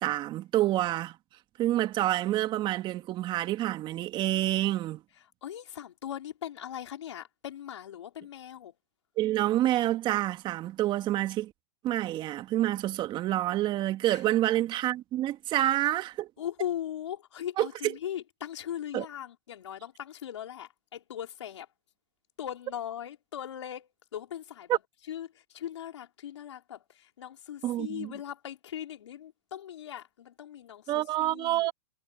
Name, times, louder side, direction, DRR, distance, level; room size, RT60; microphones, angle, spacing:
voice 1, 0.0-1.2 1.6-5.0 9.2-11.5 11.8-16.3 17.6-17.9 18.9-19.0 27.6-28.1 30.9-31.7, right 14 dB, 30° right, 2.2 m, -28 dB
voice 2, 5.4-8.7 14.0-14.3 15.5-15.7 16.4-21.7 22.4-24.8 25.1-31.7, left 10 dB, 80° left, 3.9 m, -39 dB
hypercardioid pair, 125°, 15 cm